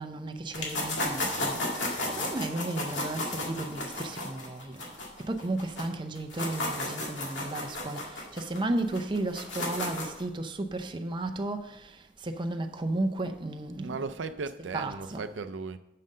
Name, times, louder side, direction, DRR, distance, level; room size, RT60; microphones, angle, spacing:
voice 1, 0.0-1.6 2.1-4.8 5.3-11.8 12.2-14.0 14.7-15.2, right 2 dB, 25° right, 0.5 m, -33 dB
sound 1, 0.5-5.8 6.2-10.2, left 2 dB, 85° left, 2.1 m, -33 dB
voice 2, 13.8-15.8, right 4 dB, 85° right, 0.5 m, -36 dB
6.6 x 5.6 x 6.3 m
head